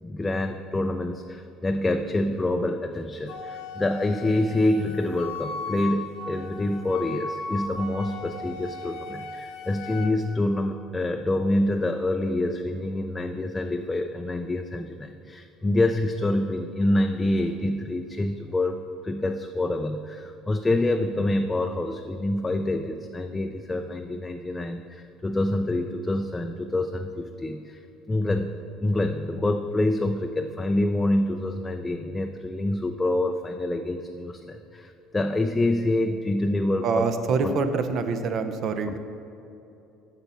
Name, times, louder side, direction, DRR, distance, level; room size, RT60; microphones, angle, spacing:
voice 1, 0.0-18.8 19.0-27.8 28.1-28.5 28.8-37.1 37.4-37.6 38.9-39.0, left 1 dB, 15° left, 5 dB, 0.4 m, -26 dB
Wind instrument woodwind instrument, 3.3-10.1, left 3 dB, 75° left, 1.0 m, -37 dB
voice 2, 36.8-39.0, right 4 dB, 55° right, 9 dB, 0.7 m, -25 dB
6.9 x 5.7 x 6.8 m, 2.9 s
supercardioid pair, 95°, 0 cm